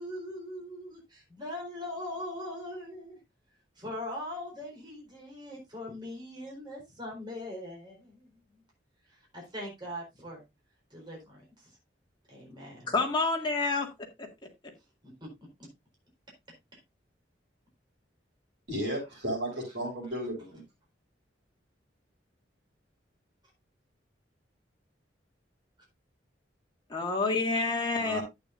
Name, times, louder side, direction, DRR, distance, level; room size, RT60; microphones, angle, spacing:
voice 1, 0.0-3.2 3.8-8.6 9.3-10.4 10.9-11.7 12.3-12.9 15.2-15.3, left 1 dB, 25° right, 4.2 m, -41 dB
voice 2, 12.9-13.9 26.9-28.2, left 3 dB, 25° left, 2.1 m, -28 dB
voice 3, 18.7-20.6 28.0-28.2, right 1 dB, 65° right, 6.7 m, -34 dB
11.5 x 8.5 x 2.6 m
head